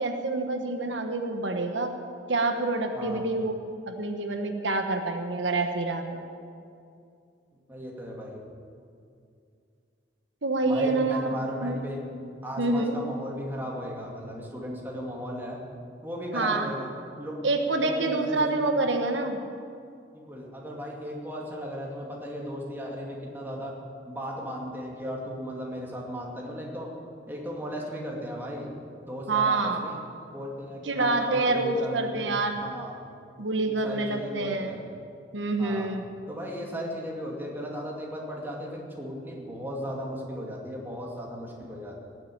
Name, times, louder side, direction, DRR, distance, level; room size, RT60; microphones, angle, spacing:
voice 1, 0.0-1.9 2.3-3.6 3.9-6.2 10.4-11.3 11.6-11.8 12.6-13.0 16.3-16.7 17.4-19.4 29.3-29.9 30.8-32.6 33.4-34.8 35.3-36.0, right 3 dB, 85° right, 5 dB, 1.3 m, -27 dB
voice 2, 2.9-3.3 7.7-8.4 10.6-12.0 12.4-15.6 16.0-16.9 17.2-18.7 20.1-23.7 24.1-26.9 27.3-28.7 29.1-30.0 30.3-32.9 33.7-34.8 35.6-35.9 36.3-42.0, equal, 10° right, -2 dB, 2.5 m, -36 dB
18.0 x 7.9 x 9.4 m, 2.4 s
head